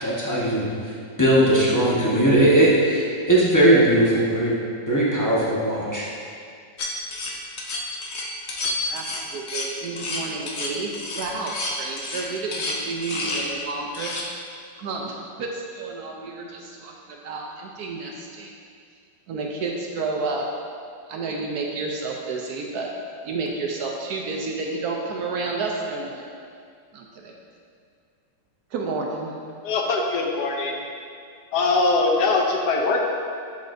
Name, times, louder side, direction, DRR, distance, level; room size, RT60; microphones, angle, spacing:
voice 1, 0.0-0.7 1.2-4.6 4.9-6.1, right 1 dB, 15° left, -8 dB, 0.7 m, -19 dB
sound 1, 6.8-13.5 13.9-14.2, left 2 dB, 55° left, 0.7 m, -30 dB
voice 2, 8.6-14.1 14.8-18.5 19.3-20.5 21.1-22.9 23.2-26.3 26.9-27.3 28.7-29.3, right 3 dB, 70° right, 0 dB, 1.0 m, -31 dB
voice 3, 29.6-30.8 31.5-33.0, left 3 dB, 70° left, 1 dB, 1.1 m, -22 dB
11.0 x 4.2 x 2.6 m, 2.3 s
omnidirectional pair, 1.9 m